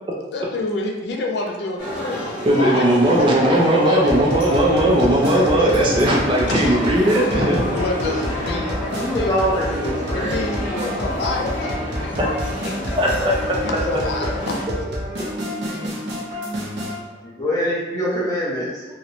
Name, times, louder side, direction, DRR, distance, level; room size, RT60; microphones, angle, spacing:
voice 1, 0.3-2.2 2.5-4.2 6.5-6.8 7.6-9.8 10.1-12.3 12.6-13.0 13.6-14.6 15.2-15.9, left 2 dB, 70° left, 1 dB, 0.3 m, -28 dB
sound 1, 1.8-14.6, equal, 5° right, 0.9 m, -30 dB
voice 2, 2.4-7.8 12.2-12.3 13.0-13.6, right 1 dB, 25° right, -2 dB, 0.3 m, -18 dB
sound 2, 4.1-17.0, equal, 75° right, 0.6 m, -29 dB
Wind instrument woodwind instrument, 8.8-11.8 12.2-15.3 15.6-15.8, equal, 35° left, 1.0 m, -36 dB
voice 3, 8.9-10.3 10.8-10.9 17.2-18.8, equal, 20° left, -7 dB, 0.7 m, -24 dB
2.8 x 2.0 x 2.5 m, 1.2 s
head